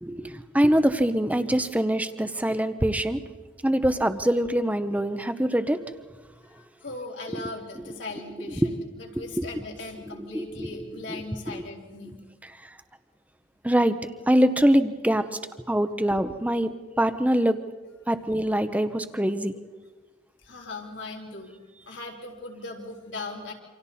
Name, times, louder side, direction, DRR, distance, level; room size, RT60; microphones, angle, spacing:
voice 1, 0.0-3.2 3.6-5.8 7.3-7.9 8.6-8.7 9.4-9.5 10.3-10.7 11.1-11.2 11.5-11.6 13.6-14.0 14.3-15.3 15.7-17.6 18.1-19.6, equal, 10° right, 10 dB, 0.9 m, -24 dB
voice 2, 6.4-12.2 20.4-21.5 21.9-23.5, left 2 dB, 75° left, 0 dB, 3.9 m, -39 dB
28.0 x 26.0 x 4.3 m, 1.3 s
head